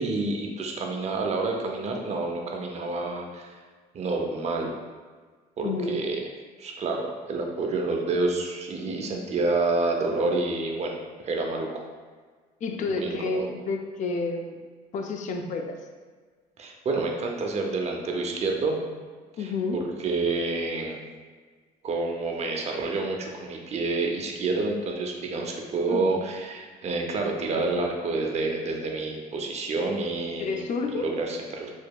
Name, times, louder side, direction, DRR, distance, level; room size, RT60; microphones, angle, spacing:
voice 1, 0.0-3.5 3.9-4.7 5.6-6.2 6.6-11.0 11.2-11.8 12.9-13.5 16.6-18.8 19.4-21.0 21.8-30.6 30.9-31.7, right 3 dB, 40° right, 1 dB, 0.6 m, -28 dB
voice 2, 5.6-6.0 12.6-14.6 14.9-15.8 19.4-19.8 25.8-26.2 30.4-31.1, left 4 dB, 45° left, 4 dB, 0.5 m, -30 dB
4.3 x 2.8 x 2.3 m, 1.5 s
cardioid pair, 110°, 17 cm